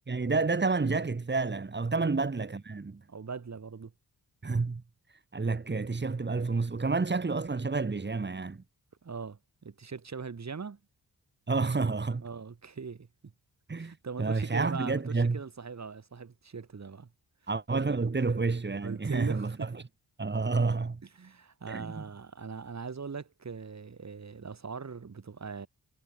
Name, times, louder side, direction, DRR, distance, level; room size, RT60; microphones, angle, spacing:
voice 1, 0.0-3.0 4.4-4.8 5.3-8.6 11.5-12.2 13.7-15.4 17.5-19.8 20.2-21.0 21.7-22.0, right 4 dB, 25° right, 1.6 m, -29 dB
voice 2, 3.1-3.9 9.0-10.8 12.2-13.3 13.8-17.1 17.7-17.8 18.8-19.5 21.2-25.7, right 5 dB, 45° right, 2.2 m, -41 dB
wide cardioid pair, 150°, 39 cm